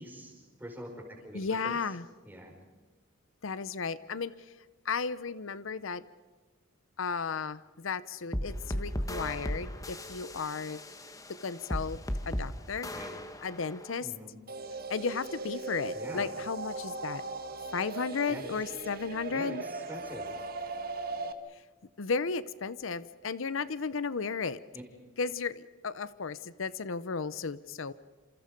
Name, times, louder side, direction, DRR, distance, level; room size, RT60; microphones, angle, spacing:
voice 1, 0.0-1.8 2.2-2.5 12.9-13.1 14.0-14.4 15.9-16.3 18.3-18.6 19.3-20.3 24.7-24.8, equal, 10° right, 0 dB, 5.4 m, -44 dB
voice 2, 1.3-2.0 3.4-4.3 4.8-6.0 7.0-10.8 11.3-12.9 13.4-14.1 14.9-17.2 17.7-19.6 22.0-24.6 25.2-27.9, left 5 dB, 80° left, 16 dB, 0.7 m, -34 dB
sound 1, 8.3-14.0, equal, 15° left, 1.5 m, -36 dB
sound 2, 14.5-21.3, right 3 dB, 45° right, 1.7 m, -39 dB
28.5 x 27.5 x 5.3 m, 1.3 s
head